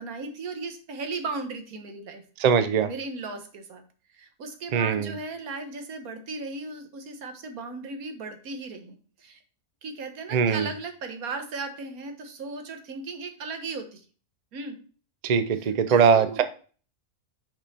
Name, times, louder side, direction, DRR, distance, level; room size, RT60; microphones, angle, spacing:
voice 1, 0.0-2.2 2.8-3.8 4.1-9.4 9.8-14.0 14.5-14.7 15.9-16.4, right 3 dB, 85° right, 6 dB, 1.6 m, -36 dB
voice 2, 2.4-2.9 4.7-5.2 10.3-10.7 15.2-16.4, right 6 dB, 60° right, 10 dB, 0.4 m, -21 dB
6.1 x 5.2 x 4.2 m, 0.39 s
omnidirectional pair, 1.5 m